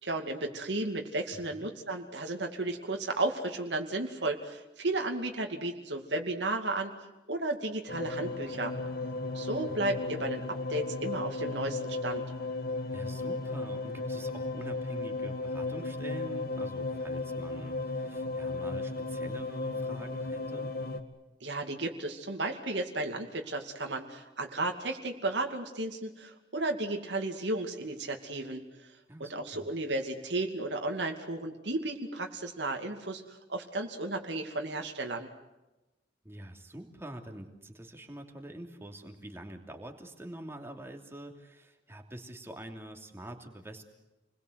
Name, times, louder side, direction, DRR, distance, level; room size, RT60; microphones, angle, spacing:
voice 1, 0.0-6.9 7.3-8.7 9.3-10.4 10.7-12.2 21.4-28.6 29.2-35.3, right 2 dB, 75° right, 3 dB, 2.5 m, -34 dB
sound 1, 7.9-21.0, left 3 dB, 55° left, 2.2 m, -35 dB
voice 2, 12.9-20.7 29.1-29.7 36.2-43.8, right 1 dB, 15° right, 3 dB, 3.0 m, -45 dB
29.5 x 21.0 x 8.2 m, 1.0 s
head